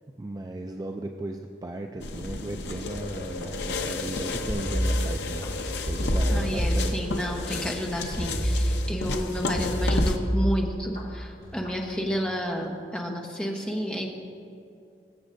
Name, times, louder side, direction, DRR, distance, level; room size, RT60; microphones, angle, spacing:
voice 1, 0.2-5.5 5.9-7.1, right 2 dB, 20° right, 3 dB, 0.3 m, -36 dB
sound 1, 2.0-10.2, left 2 dB, 75° left, 0.7 m, -32 dB
sound 2, 4.5-5.5 5.9-7.3 8.2-9.1 9.5-11.0 11.4-11.8, equal, 40° left, 2.1 m, -27 dB
voice 2, 6.3-14.1, equal, 5° left, 0 dB, 0.8 m, -31 dB
21.0 x 7.1 x 2.6 m, 2.6 s
head